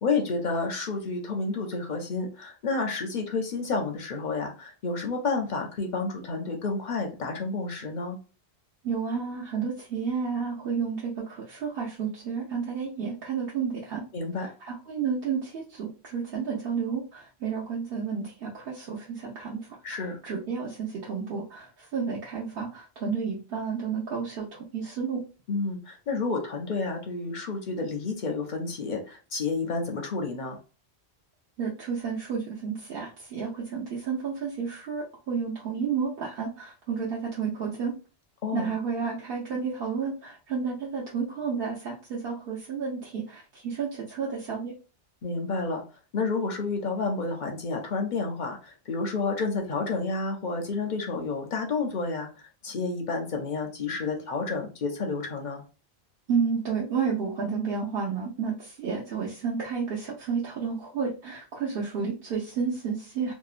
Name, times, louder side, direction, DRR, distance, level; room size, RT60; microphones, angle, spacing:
voice 1, 0.0-8.2 14.1-14.5 19.8-20.2 25.5-30.6 38.4-38.7 45.2-45.8 46.1-55.6, left 4 dB, 55° left, 3 dB, 0.6 m, -30 dB
voice 2, 8.8-14.0 14.4-19.6 19.9-25.2 31.6-37.9 38.5-44.7 56.3-63.3, right 6 dB, 65° right, -5 dB, 0.8 m, -31 dB
2.8 x 2.1 x 2.4 m, 0.34 s
omnidirectional pair, 1.1 m